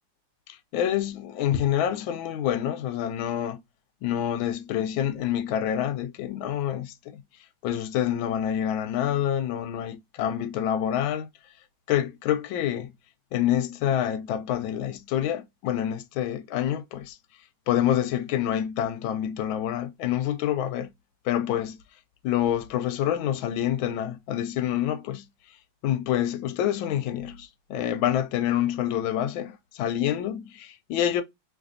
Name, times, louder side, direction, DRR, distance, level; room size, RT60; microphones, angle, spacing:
voice 1, 0.5-3.6 4.0-7.2 7.6-11.3 11.9-12.9 13.3-17.2 17.7-20.9 21.2-21.8 22.2-25.3 25.8-31.2, left 11 dB, 80° left, 1.3 m, -27 dB
3.9 x 3.3 x 2.5 m
omnidirectional pair, 2.2 m